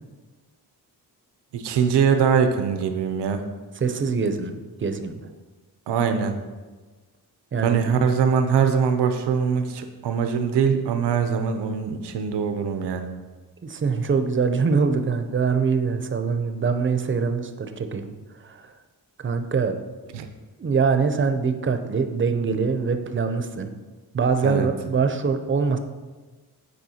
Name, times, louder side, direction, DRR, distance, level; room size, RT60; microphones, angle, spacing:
voice 1, 1.5-3.4 5.9-6.4 7.6-13.1 20.1-20.3 24.4-24.7, right 6 dB, 90° right, 7 dB, 0.6 m, -22 dB
voice 2, 3.8-5.2 7.5-7.8 13.6-18.1 18.4-18.7 19.2-19.8 20.6-23.7 24.1-25.8, right 5 dB, 30° right, 7 dB, 0.5 m, -23 dB
9.1 x 4.3 x 2.8 m, 1.3 s
cardioid pair, 95°, 40 cm